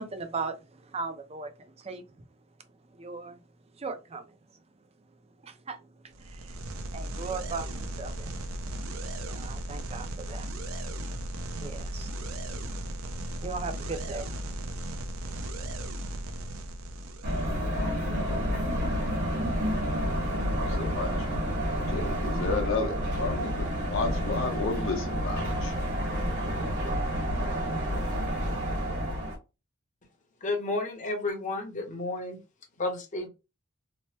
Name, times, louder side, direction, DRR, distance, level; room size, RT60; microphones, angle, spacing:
voice 1, 0.0-2.0 3.0-3.4 3.8-4.3 5.4-5.9 6.2-6.6 6.9-8.4 9.3-10.5 11.6-12.1 13.4-14.4, right 4 dB, 30° right, 0.5 m, -38 dB
sound 1, 6.1-17.6, right 1 dB, 75° right, 0.6 m, -36 dB
sound 2, 17.2-29.4, equal, 55° right, 1.5 m, -29 dB
voice 2, 17.7-18.4 20.2-21.1 21.9-25.7, left 4 dB, 65° left, 0.8 m, -33 dB
voice 3, 30.4-32.4 32.8-33.3, left 2 dB, 35° left, 0.8 m, -31 dB
3.0 x 2.0 x 3.1 m
head